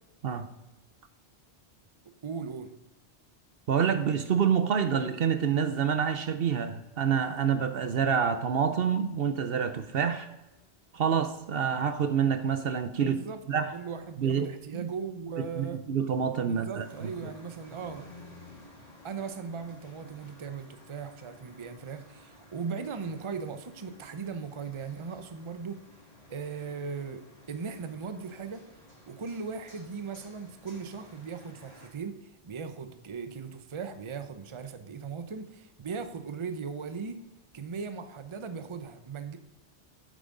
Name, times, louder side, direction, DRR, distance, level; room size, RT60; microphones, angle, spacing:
voice 1, 2.2-2.7 13.0-13.4 13.7-15.8 16.5-18.1 19.0-25.8 26.3-28.6 29.1-37.2 37.5-39.4, right 5 dB, 30° right, 9 dB, 0.7 m, -38 dB
voice 2, 3.7-10.3 10.9-13.2 13.5-13.7 14.2-14.5 14.7-14.9 15.6-17.3, right 7 dB, 60° right, 9 dB, 0.8 m, -27 dB
sound 1, 16.8-31.9, left 1 dB, 35° left, 3.2 m, -54 dB
8.9 x 8.8 x 3.8 m, 1.0 s
omnidirectional pair, 1.1 m